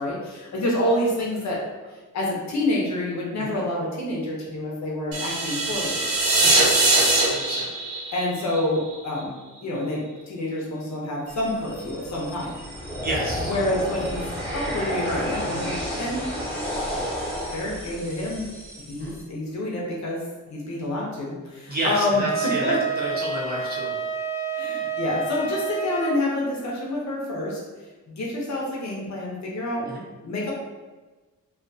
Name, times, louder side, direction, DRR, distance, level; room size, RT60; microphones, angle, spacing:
voice 1, 0.0-1.6 2.1-6.0 8.1-9.3 9.6-12.6 13.4-16.2 17.5-18.5 18.8-20.2 20.5-22.8 24.5-27.6 28.1-29.9 30.2-30.5, left 1 dB, 55° left, -4 dB, 0.7 m, -27 dB
sound 1, 5.1-9.2, right 2 dB, 85° right, 0.7 m, -22 dB
voice 2, 6.4-7.7 13.0-13.5 19.0-19.1 21.7-23.9 29.9-30.1, right 1 dB, 30° right, -7 dB, 0.7 m, -30 dB
sound 2, 11.3-19.2, equal, 5° left, 1.0 m, -31 dB
Wind instrument woodwind instrument, 22.2-26.1, right 5 dB, 20° left, 0.4 m, -29 dB
2.4 x 2.3 x 2.6 m, 1.2 s
wide cardioid pair, 145°, 34 cm